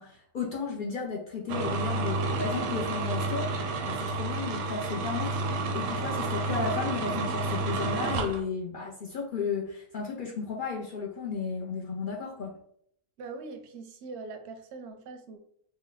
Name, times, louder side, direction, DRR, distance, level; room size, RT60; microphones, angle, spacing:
voice 1, 0.0-3.5 3.8-5.4 5.7-12.6, left 5 dB, 60° left, -2 dB, 0.5 m, -34 dB
sound 1, 1.5-8.4, right 3 dB, 85° right, 1.0 m, -30 dB
voice 2, 13.2-15.5, right 3 dB, 65° right, 6 dB, 0.7 m, -42 dB
3.1 x 2.1 x 3.8 m, 0.67 s
omnidirectional pair, 1.4 m